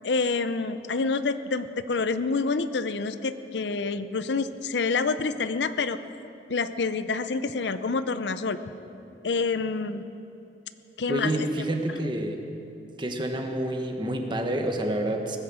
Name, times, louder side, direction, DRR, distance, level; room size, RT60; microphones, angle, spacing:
voice 1, 0.0-6.0 6.5-8.6 9.2-10.0 11.0-11.5, left 4 dB, 80° left, 12 dB, 0.6 m, -27 dB
voice 2, 11.1-12.4 13.0-15.4, right 1 dB, 25° right, 4 dB, 1.3 m, -28 dB
19.0 x 9.9 x 7.4 m, 2.8 s
head